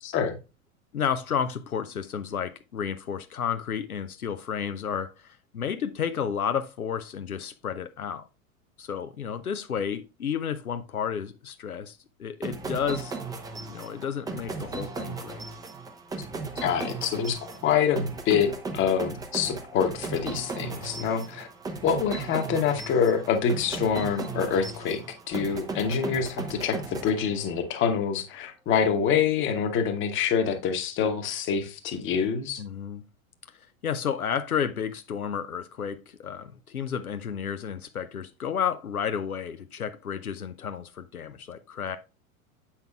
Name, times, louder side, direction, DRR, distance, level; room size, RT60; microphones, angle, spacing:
voice 1, 0.0-0.4 16.6-21.5 21.8-25.0 25.3-32.6, left 7 dB, 30° left, 1.0 m, -26 dB
voice 2, 0.9-8.3 8.8-13.1 13.6-15.4 32.6-33.0 33.5-42.0, left 7 dB, 85° left, 0.6 m, -32 dB
sound 1, 12.4-27.7, right 3 dB, 10° right, 0.5 m, -36 dB
7.7 x 5.7 x 2.2 m
figure-of-eight pair, 90°, 42 cm